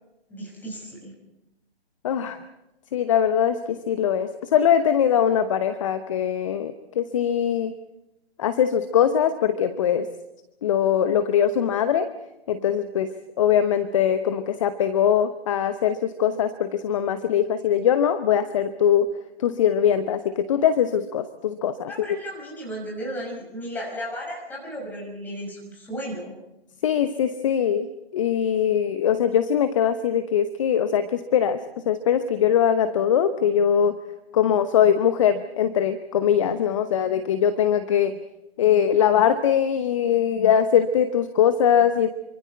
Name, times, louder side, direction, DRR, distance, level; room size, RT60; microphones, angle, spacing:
voice 1, 0.3-1.1 21.9-26.3, equal, 5° left, -2 dB, 6.2 m, -34 dB
voice 2, 2.0-2.4 2.9-7.7 8.4-10.1 10.6-12.1 12.5-19.1 19.4-22.1 26.8-31.6 31.9-34.0 34.3-38.2 38.6-42.1, left 9 dB, 30° left, 10 dB, 1.0 m, -21 dB
27.5 x 25.0 x 4.6 m, 0.92 s
figure-of-eight pair, 135°, 31 cm